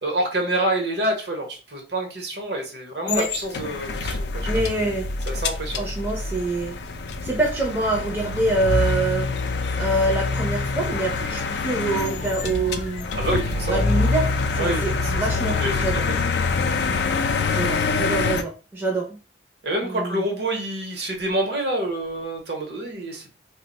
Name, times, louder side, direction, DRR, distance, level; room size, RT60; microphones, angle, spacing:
voice 1, 0.0-4.5 5.3-5.8 13.2-13.9 14.6-15.0 15.6-16.2 19.6-23.2, right 1 dB, 65° right, 2 dB, 0.9 m, -27 dB
sound 1, 3.1-18.4, left 4 dB, 60° left, 0.4 m, -25 dB
voice 2, 4.5-5.1 5.8-6.8 7.2-9.3 9.8-13.1 13.7-16.0 16.8-17.0 17.5-19.1 19.8-20.2, right 2 dB, 10° right, -2 dB, 0.5 m, -25 dB
sound 2, 10.9-17.1, left 2 dB, 40° left, 0.7 m, -43 dB
2.5 x 2.2 x 4.0 m, 0.34 s
head